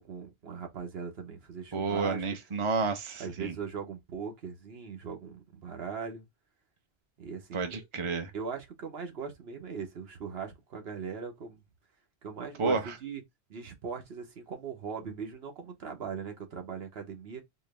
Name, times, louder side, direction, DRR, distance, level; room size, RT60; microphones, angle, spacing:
voice 1, 0.0-2.3 3.2-6.3 7.2-7.9 8.3-11.6 12.2-13.2 13.5-17.4, right 6 dB, 70° right, 1.2 m, -40 dB
voice 2, 1.7-3.5 7.5-8.3 12.6-12.8, right 4 dB, 30° right, 0.7 m, -30 dB
4.4 x 2.1 x 3.2 m
omnidirectional pair, 1.1 m